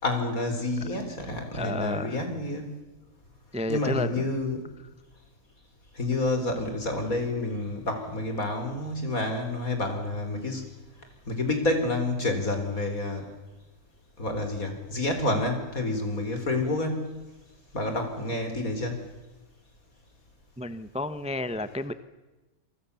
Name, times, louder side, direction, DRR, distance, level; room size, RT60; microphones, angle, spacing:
voice 1, 0.0-2.7 3.7-4.6 5.9-10.6 11.3-13.3 14.2-17.1 17.7-19.0, left 2 dB, 75° left, 5 dB, 4.8 m, -29 dB
voice 2, 1.5-2.2 3.5-4.3 20.6-21.9, left 2 dB, 5° right, 12 dB, 0.8 m, -31 dB
27.5 x 23.5 x 7.0 m, 1.1 s
omnidirectional pair, 1.5 m